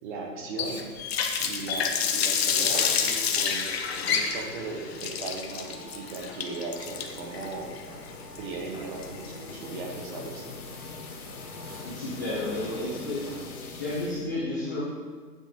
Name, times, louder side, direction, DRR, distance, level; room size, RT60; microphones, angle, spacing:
voice 1, 0.0-0.8 1.4-3.7 4.0-7.7 8.4-10.5, right 3 dB, 30° right, 1 dB, 1.3 m, -37 dB
Water tap faucet, 0.6-9.5, left 7 dB, 40° left, 0.8 m, -28 dB
sound 1, 2.5-13.8, equal, 10° right, 1.2 m, -47 dB
sound 2, 6.8-14.3, left 4 dB, 60° left, 1.6 m, -43 dB
voice 2, 11.8-13.2 13.7-14.8, left 2 dB, 10° left, -9 dB, 0.5 m, -31 dB
8.9 x 7.6 x 3.7 m, 1.5 s
hypercardioid pair, 150°, 50 cm